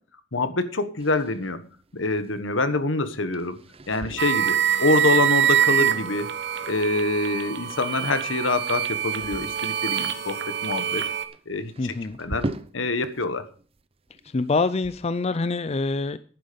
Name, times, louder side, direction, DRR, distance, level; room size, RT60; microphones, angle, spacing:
voice 1, 0.3-1.6 1.9-3.6 3.9-6.3 6.6-11.0 11.5-12.5 12.7-13.4, left 2 dB, 75° left, 11 dB, 1.4 m, -25 dB
sound 1, 1.0-13.3 13.6-15.2, right 2 dB, 30° right, 0.7 m, -41 dB
sound 2, 4.2-11.3, right 9 dB, 65° right, 1.2 m, -25 dB
voice 2, 11.8-12.2 14.2-16.2, left 3 dB, 35° left, 13 dB, 0.5 m, -25 dB
11.0 x 9.2 x 5.2 m, 0.43 s
head